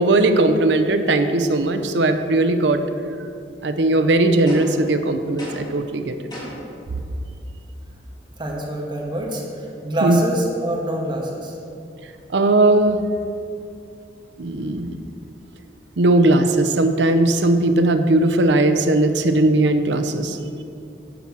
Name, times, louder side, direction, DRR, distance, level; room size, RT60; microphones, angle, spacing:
voice 1, 0.0-2.8 3.6-6.1 10.0-10.2 12.3-13.0 14.4-15.0 16.0-20.4, right 2 dB, 75° right, 8 dB, 0.7 m, -18 dB
sound 1, 4.5-4.9 5.4-5.8 6.3-6.7, equal, 25° left, 2.6 m, -35 dB
voice 2, 8.4-11.6, right 1 dB, 25° right, -1 dB, 1.5 m, -26 dB
10.0 x 4.7 x 7.1 m, 2.5 s
head